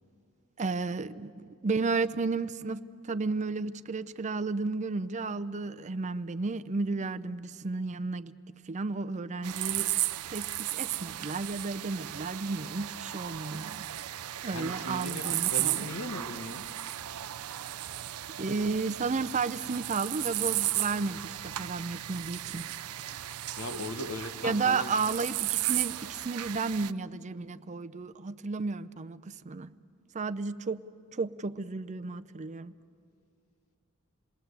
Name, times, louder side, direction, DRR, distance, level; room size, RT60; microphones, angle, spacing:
voice 1, 0.6-8.3 8.7-9.9 10.3-13.9 14.4-15.8 18.4-22.7 24.4-29.7 30.1-30.8 31.1-32.7, right 4 dB, 35° right, 12 dB, 0.5 m, -33 dB
sound 1, 9.4-26.9, right 15 dB, 80° right, 0.5 m, -35 dB
voice 2, 14.4-16.6 23.6-24.9, left 1 dB, 70° left, 9 dB, 1.3 m, -38 dB
28.5 x 20.5 x 8.1 m, 2.4 s
head